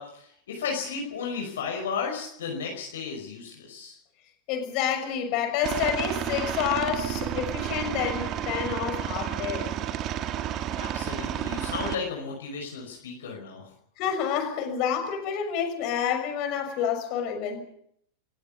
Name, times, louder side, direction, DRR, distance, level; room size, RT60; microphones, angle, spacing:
voice 1, 0.0-3.9 10.8-13.7, left 5 dB, 60° left, 1 dB, 5.4 m, -34 dB
voice 2, 4.5-9.7 14.0-17.6, left 8 dB, 40° left, 5 dB, 6.3 m, -28 dB
Aircraft, 5.6-11.9, right 10 dB, 35° right, 1.7 m, -31 dB
29.5 x 16.0 x 6.9 m, 0.69 s
figure-of-eight pair, 90°, 0 cm